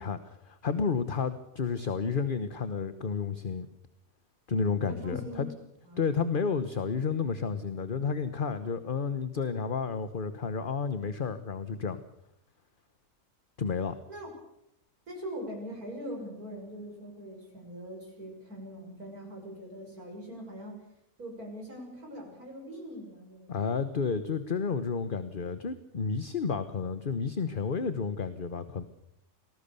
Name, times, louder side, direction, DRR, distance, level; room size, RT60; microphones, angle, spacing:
voice 1, 0.0-3.7 4.5-5.5 6.0-12.0 13.6-14.0 23.5-28.8, left 5 dB, 40° left, 11 dB, 1.2 m, -31 dB
voice 2, 4.9-5.5 5.9-6.0 14.1-14.3 15.1-20.9 21.2-23.7, equal, 85° right, 1 dB, 7.2 m, -42 dB
27.0 x 19.5 x 6.9 m, 0.78 s
omnidirectional pair, 1.5 m